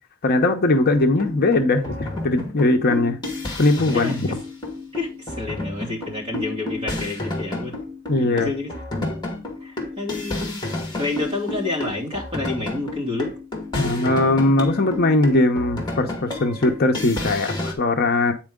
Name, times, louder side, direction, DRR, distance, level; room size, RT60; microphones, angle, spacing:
voice 1, 0.2-3.2 3.6-4.3 8.1-8.5 13.8-18.3, left 2 dB, 45° left, 0.7 m, -20 dB
sound 1, 0.9-17.7, left 2 dB, 20° left, 1.6 m, -31 dB
voice 2, 3.9-4.4 4.9-7.8 8.2-8.7 9.6-10.6 11.0-13.3, left 3 dB, 25° right, 2.5 m, -29 dB
8.7 x 4.5 x 3.6 m
head